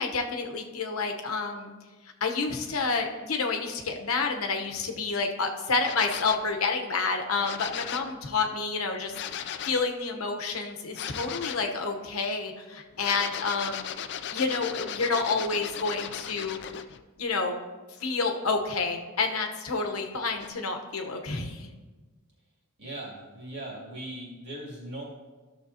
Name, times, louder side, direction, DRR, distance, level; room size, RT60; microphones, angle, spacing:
voice 1, 0.0-1.7 2.2-13.9 14.3-16.6 17.2-17.5 18.0-21.7, left 4 dB, 85° left, 4 dB, 1.0 m, -29 dB
sound 1, 5.8-6.5 7.4-8.2 9.1-9.9 10.9-11.7 12.9-17.0 20.4-20.5, left 9 dB, 55° left, 0.4 m, -37 dB
voice 2, 22.8-25.0, right 1 dB, 55° right, -4 dB, 2.7 m, -39 dB
13.5 x 6.6 x 2.8 m, 1.3 s
head